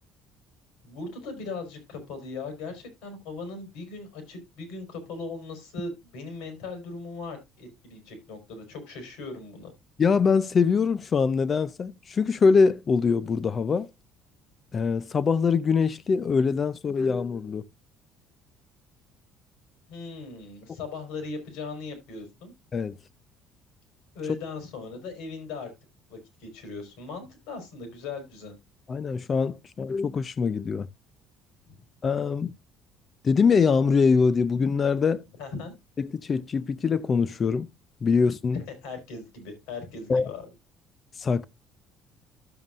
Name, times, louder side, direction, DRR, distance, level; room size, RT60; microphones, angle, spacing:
voice 1, 0.8-9.7 19.9-22.5 24.1-25.7 26.1-28.6 31.7-31.8 35.4-35.7 38.5-40.5, left 3 dB, 85° left, 4.1 m, -38 dB
voice 2, 10.0-13.9 14.7-17.6 22.7-23.0 28.9-30.9 32.0-32.5 33.2-35.2 36.0-37.7 38.0-38.6 40.1-40.3 41.2-41.5, left 5 dB, 30° left, 0.4 m, -23 dB
12.5 x 7.4 x 2.4 m
cardioid pair, 145°, 0 cm